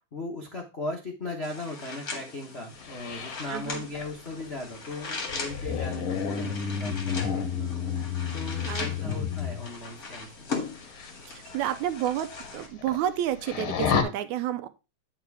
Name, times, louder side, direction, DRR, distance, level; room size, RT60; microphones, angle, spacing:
voice 1, 0.1-7.7 8.3-10.6, left 2 dB, 80° left, -1 dB, 0.5 m, -38 dB
Soundscape Regenboog Myriam Bader Chaimae Safa, 1.4-12.7, left 4 dB, 35° left, 1.8 m, -39 dB
sound 1, 2.8-9.7 10.8-11.1 11.5-11.6 12.1-12.2 12.4-13.1 13.4-14.0, left 7 dB, 55° left, 1.6 m, -31 dB
voice 2, 3.5-3.8 8.7-9.3 11.2-14.7, right 11 dB, 80° right, 10 dB, 1.9 m, -31 dB
8.8 x 4.8 x 4.7 m, 0.27 s
omnidirectional pair, 3.5 m